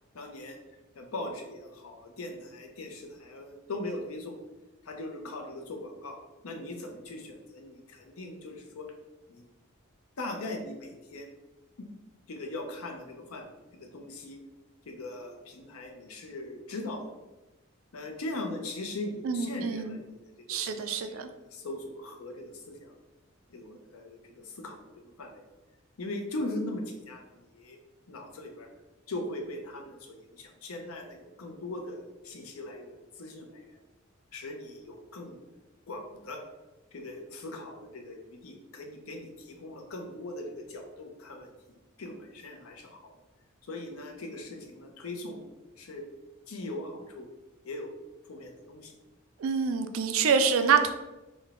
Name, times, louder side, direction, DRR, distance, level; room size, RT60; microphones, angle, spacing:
voice 1, 0.1-0.6 0.9-4.4 4.8-6.2 6.4-8.9 9.3-9.4 10.2-11.3 11.8-11.9 12.3-14.4 14.9-17.0 17.9-22.9 23.5-24.9 25.2-25.4 26.0-27.8 28.1-28.7 29.1-33.8 34.3-35.4 35.9-36.4 36.9-43.1 43.6-45.4 45.8-46.0 46.5-47.3 47.6-47.9 48.2-48.9, left 2 dB, 80° left, 3 dB, 0.6 m, -40 dB
voice 2, 19.2-20.0 20.5-21.3 49.4-50.9, right 6 dB, 70° right, 8 dB, 0.4 m, -26 dB
3.8 x 2.2 x 3.5 m, 1.1 s
head